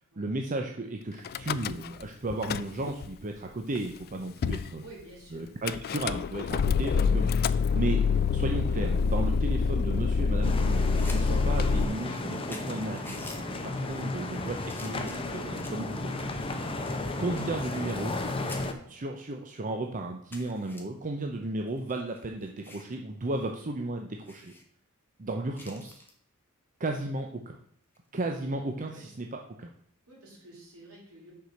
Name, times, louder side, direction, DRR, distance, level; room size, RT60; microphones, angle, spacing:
voice 1, 0.2-4.8 5.3-8.0 8.3-16.2 17.2-18.2 18.9-24.5 25.2-26.0 26.8-27.6 28.1-29.7, right 2 dB, 35° right, 3 dB, 0.7 m, -34 dB
Car / Engine starting / Idling, 1.3-2.0 2.3-3.1 3.8-4.0 4.4-4.7 5.7-11.8, left 5 dB, 45° left, 0.3 m, -26 dB
voice 2, 4.8-5.5 13.6-13.8 15.9-16.0 28.9-29.1 30.1-31.3, right 2 dB, 70° right, -3 dB, 3.6 m, -50 dB
sound 1, 10.4-18.7, left 2 dB, 25° left, 0.8 m, -34 dB
sound 2, 10.8-11.2 11.6-11.7 12.2-12.3 12.5-13.4 14.1-14.4 14.7-15.9 16.4-18.2 18.5-18.7 19.3-19.4 19.7-19.8 20.3-20.8 21.7-22.9 23.3-23.5 23.8-23.9 24.2-24.6 25.5-26.1 27.8-28.1, left 2 dB, 10° left, 1.2 m, -48 dB
6.7 x 4.8 x 6.3 m, 0.65 s
head